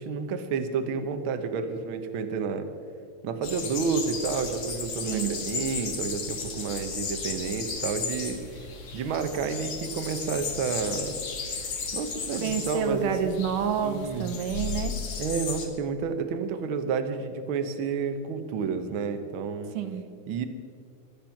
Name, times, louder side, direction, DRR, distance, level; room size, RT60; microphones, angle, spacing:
voice 1, 0.0-2.7 3.2-8.4 8.9-11.2 11.9-13.1 13.8-14.3 15.2-19.8 20.3-20.5, right 5 dB, 60° right, 7 dB, 1.3 m, -30 dB
sound 1, 3.4-15.7, left 5 dB, 50° left, 2.7 m, -35 dB
voice 2, 5.0-5.4 12.4-15.0 19.7-20.1, right 7 dB, 85° right, 8 dB, 2.7 m, -28 dB
24.0 x 9.0 x 5.9 m, 2.3 s
omnidirectional pair, 3.7 m